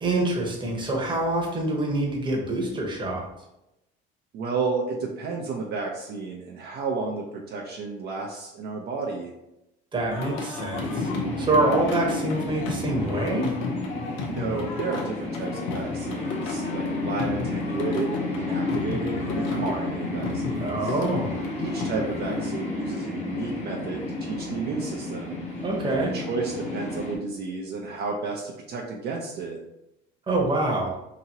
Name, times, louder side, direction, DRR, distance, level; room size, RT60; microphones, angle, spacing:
voice 1, 0.0-3.3 9.9-11.1 11.4-13.5 20.6-21.4 25.6-26.1 30.3-30.9, right 2 dB, 25° right, -1 dB, 0.9 m, -25 dB
voice 2, 4.3-9.3 14.3-21.0 21.6-25.4 25.9-29.6, right 4 dB, 55° right, -1 dB, 0.5 m, -32 dB
Singing, 10.1-22.5, left 4 dB, 80° left, 0.6 m, -35 dB
sound 1, 10.7-27.2, left 2 dB, 35° left, 1.0 m, -31 dB
2.9 x 2.7 x 2.6 m, 0.89 s
supercardioid pair, 90°, 20 cm